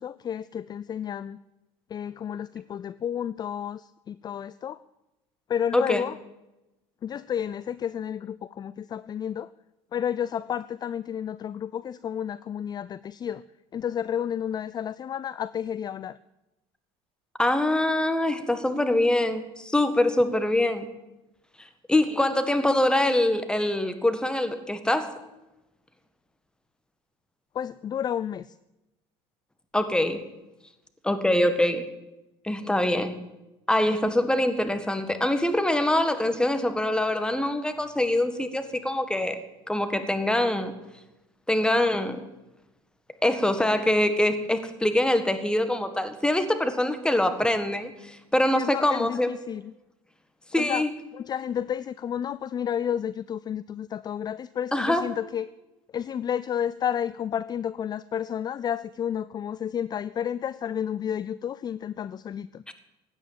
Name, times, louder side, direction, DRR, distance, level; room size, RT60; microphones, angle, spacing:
voice 1, 0.0-1.4 1.9-4.8 5.5-6.1 7.0-9.5 9.9-13.4 13.7-16.2 27.5-28.5 48.6-49.7 50.6-50.8 51.1-55.5 55.9-62.6, left 9 dB, 30° left, 18 dB, 0.4 m, -31 dB
voice 2, 5.7-6.0 17.4-20.9 21.6-25.2 29.7-30.2 31.0-31.9 32.4-33.1 33.7-39.4 39.7-40.7 41.5-42.2 43.2-49.3 50.5-50.9 54.7-55.1, left 1 dB, 5° left, 10 dB, 1.7 m, -24 dB
16.0 x 9.8 x 7.5 m, 0.99 s
supercardioid pair, 100°, 14 cm